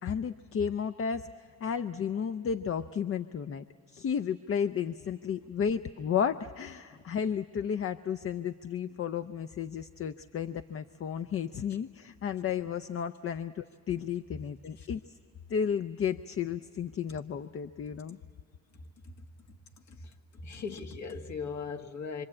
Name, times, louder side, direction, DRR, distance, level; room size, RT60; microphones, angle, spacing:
voice 1, 0.0-3.6 3.9-15.1 15.5-18.2, left 7 dB, 45° left, 10 dB, 0.6 m, -33 dB
voice 2, 20.3-22.2, left 5 dB, 70° left, 4 dB, 1.8 m, -38 dB
25.5 x 25.5 x 8.7 m, 2.1 s
cardioid pair, 90°, 30 cm